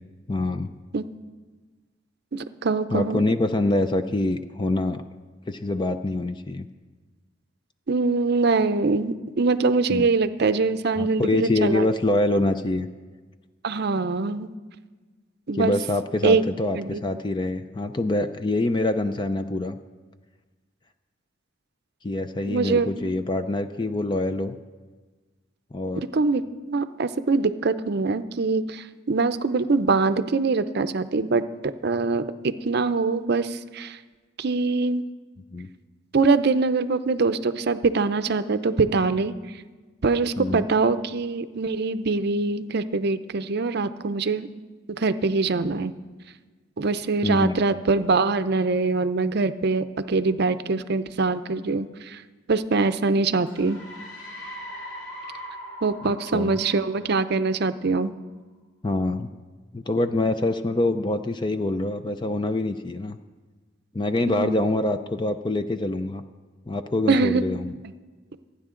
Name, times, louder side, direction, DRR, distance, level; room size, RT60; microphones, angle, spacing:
voice 1, 0.3-0.7 2.9-5.0 5.5-6.7 9.9-10.1 11.0-12.9 15.5-19.8 22.0-24.6 25.7-26.0 35.5-35.7 40.4-40.6 47.2-47.6 56.0-56.6 58.8-59.3 59.7-63.2 63.9-66.2 66.7-67.7, left 2 dB, 25° left, 9 dB, 0.4 m, -25 dB
voice 2, 2.3-3.2 7.9-11.9 13.6-14.5 15.5-15.7 16.2-16.4 16.7-17.0 22.5-22.9 26.0-34.0 34.4-35.0 36.1-39.3 40.0-44.5 44.9-45.9 46.8-52.2 52.5-53.8 55.8-58.1 64.3-64.6 67.1-67.4, right 4 dB, 55° right, 12 dB, 0.6 m, -23 dB
sound 1, 53.5-58.0, equal, 70° left, 2.2 m, -41 dB
27.5 x 9.8 x 3.8 m, 1.4 s
head